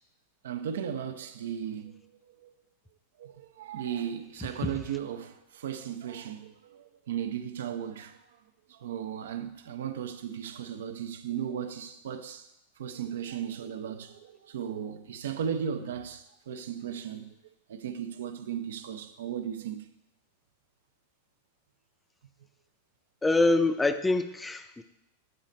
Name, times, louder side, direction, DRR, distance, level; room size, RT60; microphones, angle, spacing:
voice 1, 0.4-2.0 2.4-2.5 3.2-8.2 8.7-12.5 12.8-17.3 17.7-19.8, right 8 dB, 75° right, 0.5 m, -36 dB
voice 2, 23.2-24.8, left 2 dB, 10° left, 0.4 m, -25 dB
7.8 x 4.0 x 4.2 m
hypercardioid pair, 110°, 0 cm